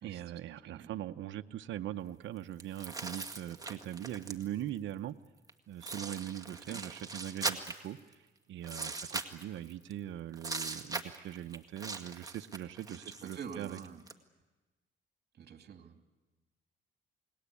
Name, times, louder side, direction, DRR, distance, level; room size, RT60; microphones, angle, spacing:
voice 1, 0.0-5.2 5.7-8.0 8.5-13.8, right 12 dB, 75° right, 8 dB, 0.8 m, -41 dB
sound 1, 2.6-4.6 5.5-5.6 5.8-8.1 8.6-9.9 10.3-14.1, right 3 dB, 20° right, 2.0 m, -40 dB
voice 2, 12.9-14.0 15.4-16.0, right 7 dB, 55° right, 6 dB, 2.5 m, -46 dB
29.0 x 20.0 x 8.5 m, 1.2 s
cardioid pair, 90°, 20 cm